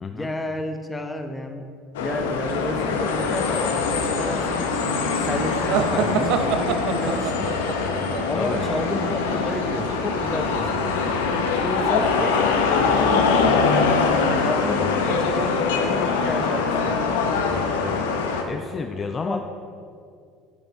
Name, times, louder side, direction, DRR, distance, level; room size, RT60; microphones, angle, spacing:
voice 1, 0.1-1.6 2.0-4.7 5.2-7.6 8.3-11.2 11.6-12.4 12.8-13.7 14.2-17.0 19.2-19.4, left 1 dB, 10° left, 6 dB, 0.9 m, -31 dB
sound 1, 1.9-18.4, left 5 dB, 70° left, 0.8 m, -23 dB
sound 2, 3.3-11.6, right 3 dB, 80° right, 1.0 m, -37 dB
sound 3, 5.7-9.4, right 7 dB, 60° right, 0.5 m, -26 dB
voice 2, 8.3-8.6 14.8-15.0 17.4-18.0 18.5-19.4, left 5 dB, 30° left, 7 dB, 0.4 m, -31 dB
10.0 x 8.7 x 3.2 m, 2.3 s
figure-of-eight pair, 65°, 0 cm